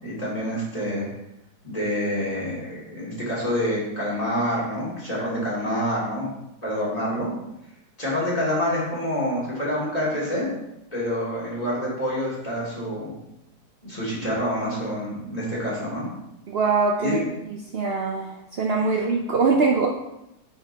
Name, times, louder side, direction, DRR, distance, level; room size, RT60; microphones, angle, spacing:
voice 1, 0.0-1.1 1.6-6.3 6.6-7.3 8.0-10.5 10.9-13.1 13.8-16.1 17.0-17.3, equal, 20° left, -7 dB, 3.0 m, -27 dB
voice 2, 16.5-19.9, right 4 dB, 70° right, 0 dB, 0.5 m, -23 dB
9.0 x 5.9 x 2.9 m, 0.87 s
omnidirectional pair, 1.9 m